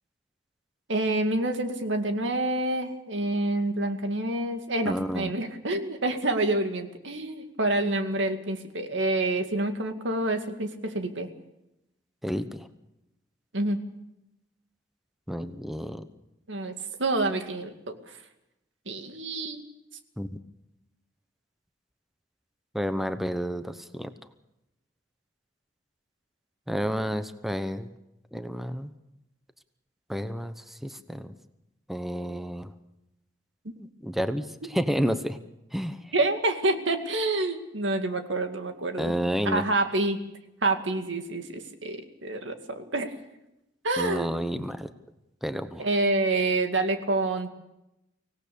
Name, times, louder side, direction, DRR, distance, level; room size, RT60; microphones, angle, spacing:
voice 1, 0.9-11.3 13.5-13.8 16.5-18.2 18.9-19.6 36.1-39.1 39.4-40.2 40.6-43.1 43.8-44.3 45.8-47.5, right 2 dB, 85° right, 6 dB, 2.2 m, -27 dB
voice 2, 4.8-5.3 12.2-12.7 15.3-16.0 20.2-20.4 22.7-24.1 26.7-27.9 28.3-28.9 30.1-31.3 31.9-32.7 33.8-35.4 35.7-36.1 39.0-39.6 44.0-44.9 45.4-45.9, equal, ahead, 10 dB, 0.9 m, -30 dB
25.0 x 17.5 x 7.0 m, 0.89 s
head